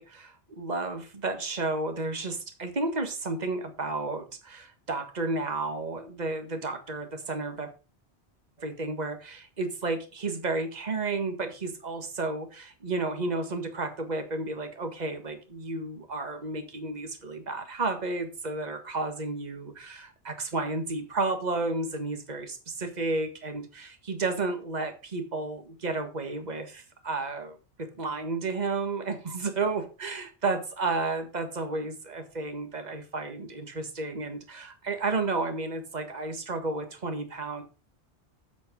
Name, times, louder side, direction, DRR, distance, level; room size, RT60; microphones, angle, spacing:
voice 1, 0.0-7.7 8.6-37.6, right 3 dB, 40° right, 1.8 m, -32 dB
8.2 x 8.1 x 5.3 m
omnidirectional pair, 1.2 m